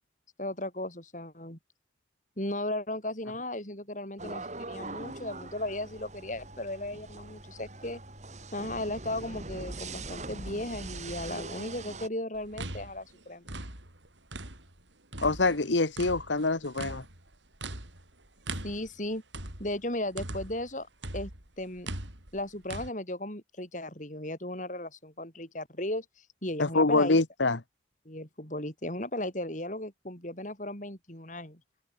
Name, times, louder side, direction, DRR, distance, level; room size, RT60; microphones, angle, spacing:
voice 1, 0.4-1.6 2.4-8.0 8.5-13.5 18.6-19.2 19.6-20.9 21.1-21.3 21.6-21.9 22.3-27.2 28.1-31.6, left 1 dB, 45° left, 6.9 m, -36 dB
sound 1, 4.2-12.1, right 2 dB, 40° right, 4.4 m, -42 dB
sound 2, 12.3-14.8 15.1-20.7 21.0-22.9, right 2 dB, 85° right, 6.7 m, -40 dB
voice 2, 15.2-17.0 26.6-27.6, left 3 dB, 85° left, 1.5 m, -25 dB
open air
head